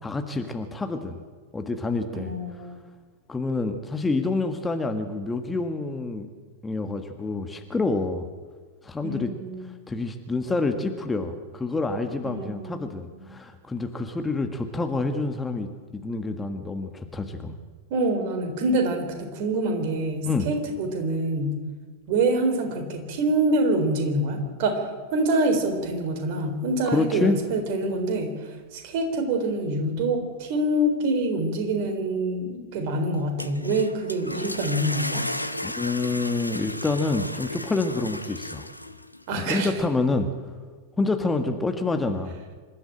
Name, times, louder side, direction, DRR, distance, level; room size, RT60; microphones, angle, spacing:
voice 1, 0.0-1.2 1.5-2.3 3.3-6.3 6.6-8.3 8.8-9.3 9.9-15.7 16.0-17.5 20.2-20.5 26.9-27.4 35.6-38.7 39.3-40.3 41.0-42.3, left 3 dB, 10° left, 6 dB, 1.7 m, -27 dB
voice 2, 2.1-2.9 9.0-9.8 12.2-12.8 13.1-13.4 17.9-21.6 22.1-35.3 39.3-39.7, right 2 dB, 50° right, 6 dB, 3.9 m, -26 dB
sound 1, 33.2-39.2, left 1 dB, 85° left, 0.9 m, -35 dB
26.5 x 12.5 x 8.9 m, 1.5 s
figure-of-eight pair, 90°, 0 cm